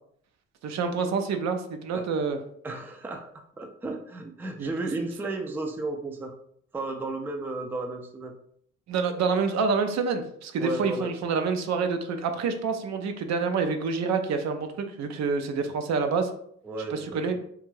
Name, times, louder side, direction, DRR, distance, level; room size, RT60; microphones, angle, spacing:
voice 1, 0.6-2.4 4.6-4.7 8.9-16.3 16.9-17.4, right 5 dB, 65° right, 6 dB, 0.5 m, -27 dB
voice 2, 2.6-3.3 3.6-6.3 6.7-8.3 10.6-11.1 16.6-17.5, right 2 dB, 5° right, 3 dB, 0.3 m, -33 dB
2.6 x 2.3 x 3.1 m, 0.66 s
cardioid pair, 90°, 30 cm